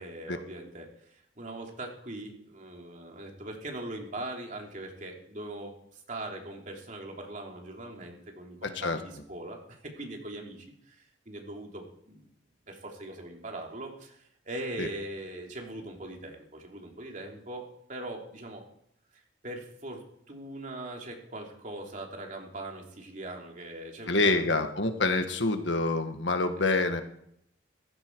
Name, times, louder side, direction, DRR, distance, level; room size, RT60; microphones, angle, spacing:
voice 1, 0.0-12.3 12.7-18.7 19.1-24.6 26.6-26.7, right 1 dB, 45° right, 1 dB, 3.2 m, -41 dB
voice 2, 24.1-27.0, left 3 dB, 75° left, 7 dB, 1.7 m, -26 dB
16.0 x 15.5 x 4.7 m, 0.72 s
head